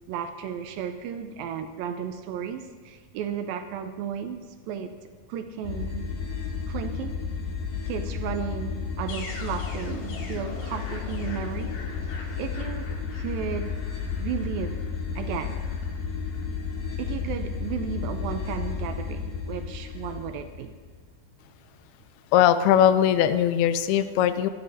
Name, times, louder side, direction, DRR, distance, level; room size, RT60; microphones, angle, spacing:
voice 1, 0.1-4.4 4.7-4.9 5.3-6.1 6.7-7.2 7.9-11.8 12.4-13.7 14.2-14.8 15.2-15.6 17.0-20.7, right 8 dB, 80° right, 8 dB, 2.3 m, -34 dB
sound 1, 5.6-21.0, left 5 dB, 70° left, 3.2 m, -32 dB
voice 2, 22.3-24.5, left 10 dB, 85° left, 12 dB, 2.6 m, -20 dB
24.0 x 11.5 x 2.7 m, 1.5 s
omnidirectional pair, 4.4 m